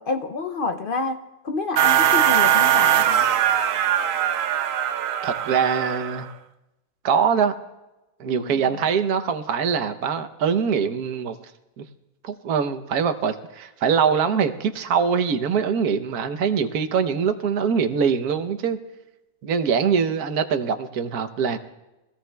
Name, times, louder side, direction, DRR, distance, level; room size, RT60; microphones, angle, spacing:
voice 1, 0.0-3.2 8.3-8.7, left 3 dB, 60° left, 7 dB, 0.5 m, -29 dB
sound 1, 1.8-6.3, right 10 dB, 70° right, 1.0 m, -20 dB
voice 2, 5.2-6.3 7.0-7.5 8.2-11.4 11.8-11.9 12.2-18.8 19.4-21.6, right 6 dB, 85° right, 9 dB, 1.4 m, -23 dB
24.0 x 17.0 x 2.3 m, 1.0 s
omnidirectional pair, 1.6 m